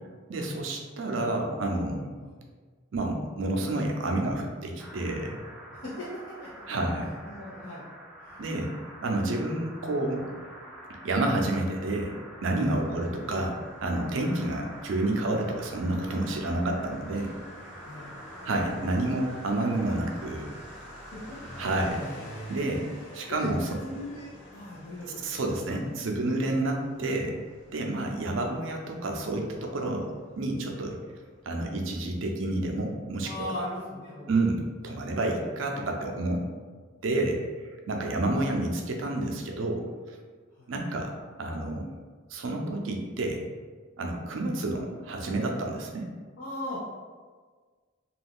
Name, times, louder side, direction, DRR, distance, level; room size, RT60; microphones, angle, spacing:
voice 1, 0.3-2.1 2.9-5.4 6.7-7.1 8.4-8.7 9.0-10.3 11.0-12.1 12.4-17.3 18.4-20.5 21.6-22.1 22.5-22.9 23.1-23.8 25.2-27.4 27.7-30.1 30.4-31.0 31.5-33.3 34.3-36.4 37.0-40.2 40.7-41.1 41.4-41.9 42.3-43.4 44.0-46.1, right 2 dB, 75° right, 1 dB, 0.5 m, -29 dB
sound 1, 4.8-21.9, right 1 dB, ahead, 0.3 m, -47 dB
voice 2, 5.8-6.8 7.3-7.8 8.2-8.4 12.8-13.1 17.8-18.1 21.1-21.4 23.3-23.5 23.8-25.3 33.2-34.3 38.2-38.4 40.6-40.7 46.4-46.8, left 1 dB, 70° left, -9 dB, 0.6 m, -39 dB
Motorcycle, 12.6-31.4, equal, 35° left, 1.0 m, -49 dB
2.4 x 2.2 x 3.5 m, 1.5 s
head